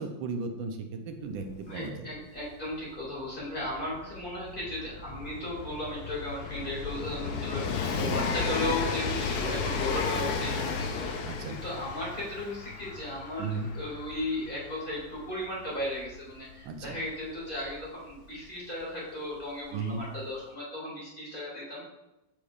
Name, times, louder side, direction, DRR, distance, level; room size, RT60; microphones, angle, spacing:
voice 1, 0.0-2.1 8.0-8.2 11.2-11.6 13.4-13.7 16.6-17.0 19.7-20.0, right 4 dB, 80° right, 5 dB, 1.4 m, -35 dB
Train, 1.5-1.6 1.8-18.4 19.4-19.5, left 5 dB, 70° left, 1.0 m, -34 dB
voice 2, 1.6-11.1 11.5-21.9, left 1 dB, 25° left, -7 dB, 2.2 m, -36 dB
8.4 x 5.1 x 2.4 m, 0.98 s
omnidirectional pair, 2.1 m